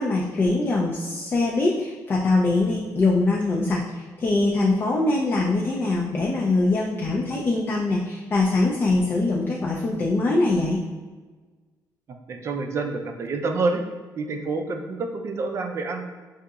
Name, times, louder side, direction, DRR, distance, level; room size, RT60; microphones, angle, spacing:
voice 1, 0.0-10.8, left 2 dB, 30° left, -2 dB, 0.4 m, -23 dB
voice 2, 12.1-13.8 14.2-16.0, right 3 dB, 45° right, 4 dB, 0.4 m, -28 dB
4.9 x 2.7 x 2.3 m, 1.4 s
cardioid pair, 140°, 7 cm